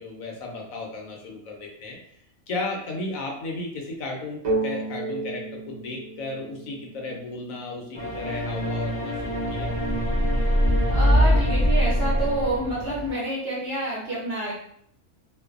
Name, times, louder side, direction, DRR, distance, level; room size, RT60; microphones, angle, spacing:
voice 1, 0.0-2.0 2.5-9.7, left 2 dB, 70° left, 0 dB, 0.9 m, -34 dB
sound 1, 4.4-8.1, right 2 dB, 85° right, 0.3 m, -32 dB
sound 2, 7.9-13.1, equal, 55° left, 0.3 m, -23 dB
voice 2, 10.9-14.5, right 1 dB, 55° right, -6 dB, 0.8 m, -28 dB
2.5 x 2.2 x 2.4 m, 0.68 s
omnidirectional pair, 1.5 m